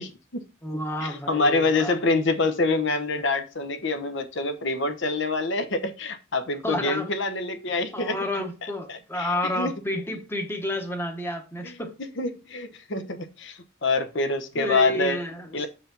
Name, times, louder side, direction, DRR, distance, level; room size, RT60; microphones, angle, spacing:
voice 1, 0.0-0.4 1.0-8.1 8.6-9.8 11.6-15.2 15.5-15.7, left 3 dB, 55° left, 0.9 m, -26 dB
voice 2, 0.6-1.9 6.6-7.1 7.9-11.9 14.6-15.7, left 1 dB, 10° left, 1.1 m, -30 dB
7.0 x 4.8 x 3.9 m
head